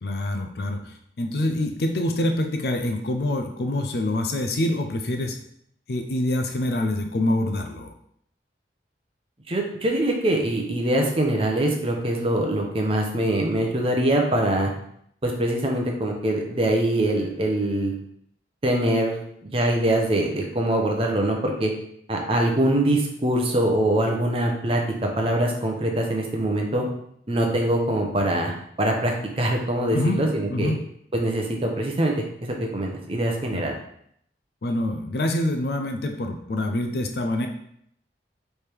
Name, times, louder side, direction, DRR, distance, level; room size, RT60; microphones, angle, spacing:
voice 1, 0.0-5.4 5.9-7.9 29.9-30.2 30.5-30.8 33.5-33.7 34.6-37.5, left 1 dB, 60° left, 5 dB, 0.5 m, -26 dB
voice 2, 9.5-14.7 15.2-17.9 18.6-21.7 22.1-26.8 27.3-28.5 28.8-30.7 31.1-32.1 32.6-33.7, right 1 dB, 30° right, 1 dB, 0.8 m, -23 dB
3.5 x 3.3 x 4.5 m, 0.69 s
head